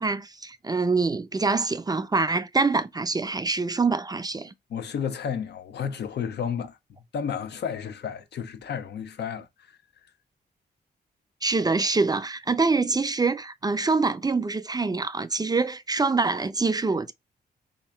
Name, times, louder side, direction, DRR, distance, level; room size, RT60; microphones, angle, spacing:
voice 1, 0.0-4.5 11.4-17.1, right 3 dB, 20° right, 0.5 m, -25 dB
voice 2, 4.7-6.8 7.1-9.8, left 7 dB, 75° left, 0.9 m, -32 dB
3.8 x 2.9 x 4.4 m
cardioid pair, 75°, 18 cm